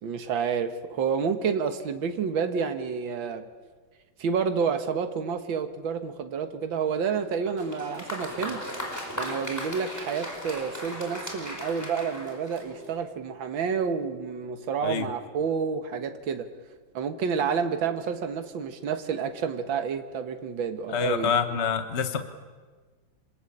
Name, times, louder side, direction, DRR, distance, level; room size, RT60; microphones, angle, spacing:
voice 1, 0.0-3.5 4.2-8.6 9.2-16.5 16.9-21.3, right 6 dB, 80° right, 7 dB, 2.1 m, -29 dB
Applause, 7.5-13.0, equal, 10° left, 4.9 m, -37 dB
voice 2, 20.9-22.2, left 6 dB, 40° left, 8 dB, 1.4 m, -26 dB
27.0 x 21.0 x 8.7 m, 1.4 s
omnidirectional pair, 2.1 m